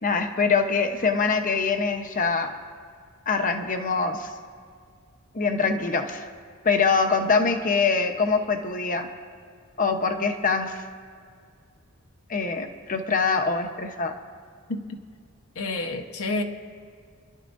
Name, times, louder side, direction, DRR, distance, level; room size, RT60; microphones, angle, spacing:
voice 1, 0.0-2.6 3.3-4.3 5.3-6.3 6.6-9.1 9.8-10.8 12.3-14.1, left 4 dB, 35° left, 6 dB, 0.9 m, -24 dB
voice 2, 15.5-16.4, left 2 dB, 70° left, 4 dB, 1.1 m, -29 dB
27.5 x 11.5 x 2.6 m, 2.1 s
head